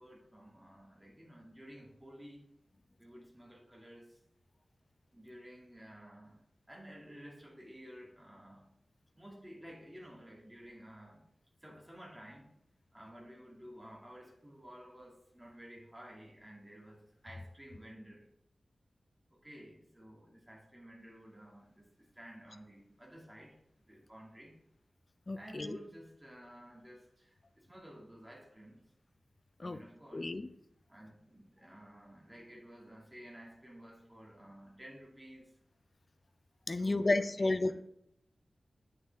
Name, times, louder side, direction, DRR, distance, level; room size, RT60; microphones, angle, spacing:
voice 1, 0.0-2.5 3.0-4.2 5.1-6.4 6.7-8.7 9.2-11.2 11.6-12.5 12.9-18.3 19.3-23.6 23.9-24.6 25.3-28.8 29.6-30.3 30.9-35.5 36.7-37.7, equal, 10° right, -2 dB, 2.4 m, -53 dB
voice 2, 25.3-25.8 29.6-29.8 30.1-30.5 36.7-37.7, left 2 dB, 35° left, 10 dB, 0.5 m, -32 dB
8.6 x 6.7 x 3.5 m, 0.76 s
wide cardioid pair, 95°, 0 cm